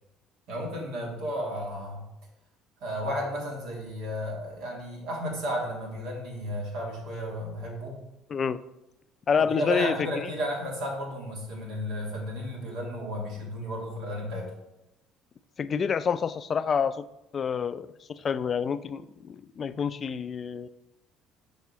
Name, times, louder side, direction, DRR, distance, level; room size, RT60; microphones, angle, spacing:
voice 1, 0.5-2.0 2.8-8.0 9.4-14.5, equal, 70° right, -1 dB, 1.8 m, -33 dB
voice 2, 8.3-8.6 9.3-10.0 15.6-17.1 17.3-20.7, left 6 dB, 40° left, 14 dB, 0.3 m, -28 dB
5.9 x 4.1 x 4.1 m, 0.90 s
hypercardioid pair, 60°, 0 cm